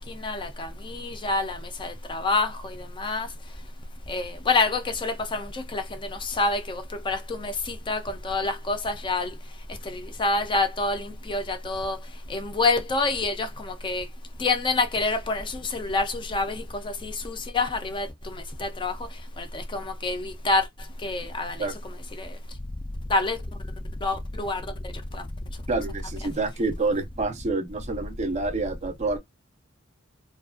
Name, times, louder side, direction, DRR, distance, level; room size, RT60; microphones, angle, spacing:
voice 1, 0.0-3.3 4.1-5.8 6.1-9.3 9.9-12.0 12.3-14.1 14.4-18.9 19.4-20.7 21.0-21.7 22.2-22.3 23.1-23.4 24.0-24.6, left 3 dB, 25° left, 0.4 m, -27 dB
voice 2, 25.7-29.2, right 3 dB, 35° right, 0.5 m, -28 dB
2.4 x 2.2 x 2.3 m
head